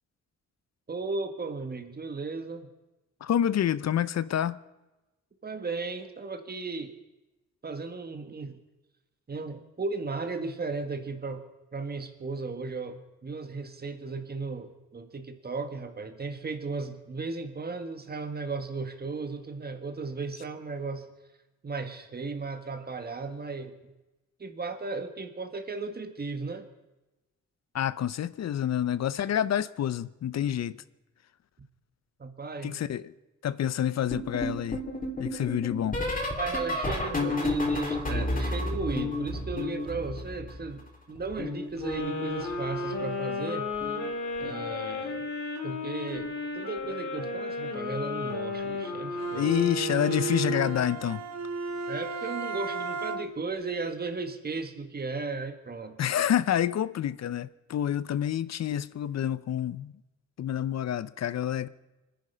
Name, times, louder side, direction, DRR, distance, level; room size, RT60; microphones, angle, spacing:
voice 1, 0.9-2.7 5.4-6.9 7.6-8.6 9.3-11.4 11.7-21.1 21.6-23.9 24.4-26.7 32.2-32.8 36.4-44.0 44.4-45.3 45.6-49.5 51.9-56.0, right 4 dB, 30° right, 1.7 m, -35 dB
voice 2, 3.2-4.6 27.7-30.8 32.6-33.1 33.4-34.8 35.2-36.0 49.4-51.2 56.0-60.0 60.4-61.7, left 10 dB, 60° left, 0.6 m, -28 dB
sound 1, 34.1-40.9 41.2-42.7 43.7-44.1 44.3-44.7 46.2-46.5 46.8-47.1 48.7-48.8, left 2 dB, 30° left, 3.3 m, -32 dB
sound 2, 41.8-51.0, left 3 dB, 85° left, 4.1 m, -34 dB
Bowed string instrument, 49.2-53.5, right 5 dB, 60° right, 1.2 m, -34 dB
24.5 x 10.5 x 5.6 m
cardioid pair, 100°, 30 cm